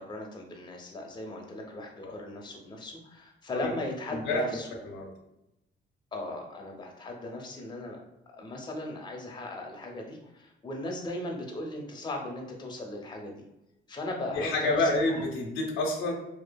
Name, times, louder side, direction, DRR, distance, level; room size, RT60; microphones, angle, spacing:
voice 1, 0.0-4.7 6.1-8.0 8.3-13.3 13.9-14.9, left 1 dB, 20° left, 1 dB, 0.5 m, -38 dB
voice 2, 4.1-5.1 14.3-16.1, left 2 dB, 85° left, 0 dB, 0.6 m, -29 dB
2.6 x 2.3 x 2.2 m, 0.90 s
cardioid pair, 90°, 20 cm